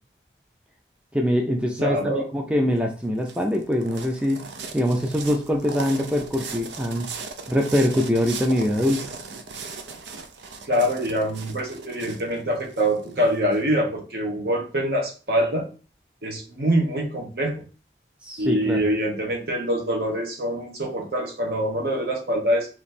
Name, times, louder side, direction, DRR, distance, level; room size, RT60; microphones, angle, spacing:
voice 1, 1.1-4.4 4.7-7.1 7.5-9.0 18.2-18.8, equal, 5° right, 2 dB, 0.4 m, -23 dB
voice 2, 1.8-2.2 10.7-15.7 16.2-17.6 18.4-22.7, equal, 60° right, 2 dB, 1.1 m, -24 dB
sound 1, 2.8-13.6, right 4 dB, 85° right, 0.6 m, -38 dB
3.3 x 3.1 x 4.2 m, 0.36 s
head